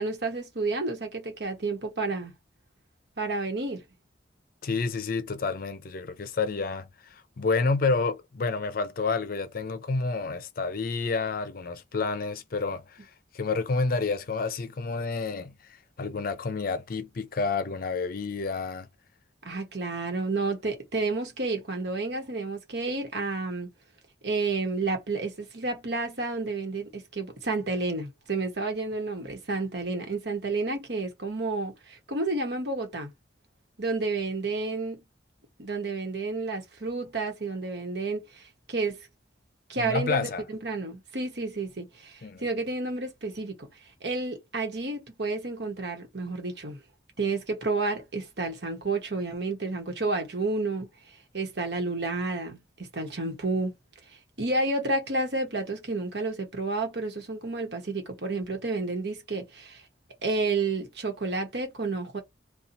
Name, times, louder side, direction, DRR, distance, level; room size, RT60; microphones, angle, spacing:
voice 1, 0.0-2.3 3.2-3.8 19.4-23.7 24.2-33.1 33.8-35.0 35.6-38.4 38.7-39.0 39.7-43.5 44.0-46.8 47.2-50.9 51.3-53.7 54.4-59.8 60.2-62.2, right 3 dB, 65° right, 1.2 m, -30 dB
voice 2, 4.6-15.6 16.0-18.9 39.8-40.4 42.2-42.4, left 4 dB, 50° left, 0.5 m, -29 dB
2.8 x 2.3 x 3.9 m
head